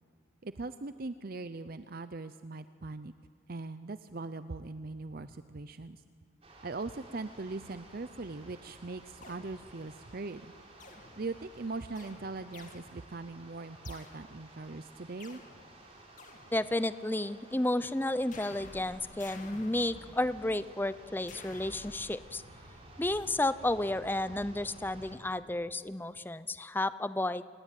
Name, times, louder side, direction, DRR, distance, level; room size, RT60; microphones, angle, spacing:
voice 1, 0.4-3.1 3.5-6.0 6.6-10.5 11.2-15.4, right 3 dB, 45° right, 12 dB, 0.6 m, -40 dB
sound 1, 6.4-25.2, right 1 dB, 30° right, 4.2 m, -54 dB
sound 2, 9.2-10.0 10.8-11.6 12.0-13.3 13.8-14.6 15.2-17.1 18.3-20.8 21.3-22.1, left 3 dB, 40° left, 2.3 m, -52 dB
voice 2, 16.5-22.4 23.0-27.4, left 1 dB, 10° left, 15 dB, 0.5 m, -32 dB
28.5 x 20.0 x 9.2 m, 2.3 s
head